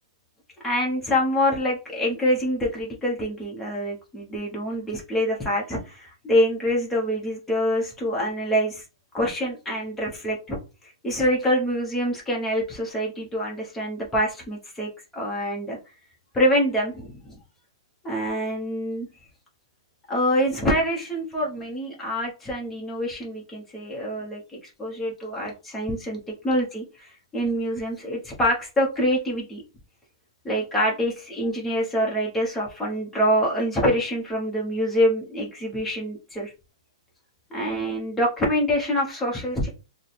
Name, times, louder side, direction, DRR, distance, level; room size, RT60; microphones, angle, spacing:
voice 1, 0.6-8.8 9.1-10.6 11.0-15.8 16.3-17.2 18.0-19.1 20.1-26.2 26.4-29.6 30.4-36.5 37.5-39.7, equal, 5° left, -3 dB, 0.8 m, -25 dB
3.3 x 2.0 x 4.1 m, 0.31 s
hypercardioid pair, 175°, 3 cm